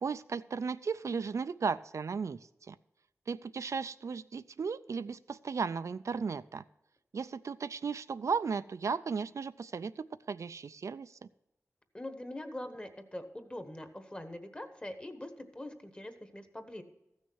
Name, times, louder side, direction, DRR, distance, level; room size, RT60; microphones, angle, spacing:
voice 1, 0.0-2.4 2.7-2.8 3.3-6.6 7.1-11.1, right 5 dB, 65° right, 13 dB, 0.3 m, -35 dB
voice 2, 11.9-16.8, left 1 dB, 20° left, 8 dB, 1.1 m, -43 dB
14.5 x 6.4 x 6.2 m, 0.88 s
wide cardioid pair, 95°, 6 cm